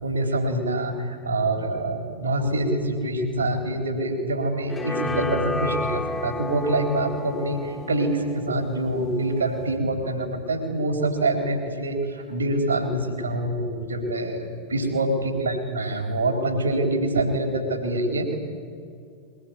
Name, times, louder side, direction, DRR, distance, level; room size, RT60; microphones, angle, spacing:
voice 1, 0.0-18.4, right 1 dB, 75° right, 5 dB, 3.8 m, -25 dB
sound 1, 4.7-9.7, left 2 dB, 10° left, 1.9 m, -32 dB
22.5 x 21.0 x 9.5 m, 2.3 s
figure-of-eight pair, 90°, 0 cm